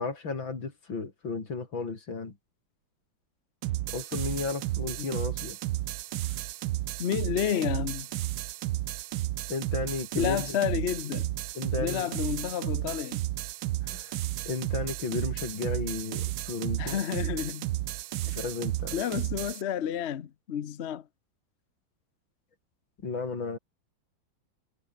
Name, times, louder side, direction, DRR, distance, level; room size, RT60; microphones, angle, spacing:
voice 1, 0.0-2.3 3.9-5.6 9.5-10.6 11.5-12.1 13.9-14.1 14.4-17.0 18.3-19.0 23.0-23.6, left 4 dB, 85° left, 4.7 m, -34 dB
sound 1, 3.6-19.6, right 16 dB, 75° right, 1.2 m, -33 dB
voice 2, 7.0-8.1 10.2-11.4 11.8-13.2 16.8-17.7 18.3-18.4 18.9-21.1, left 9 dB, 50° left, 0.8 m, -31 dB
omnidirectional pair, 2.1 m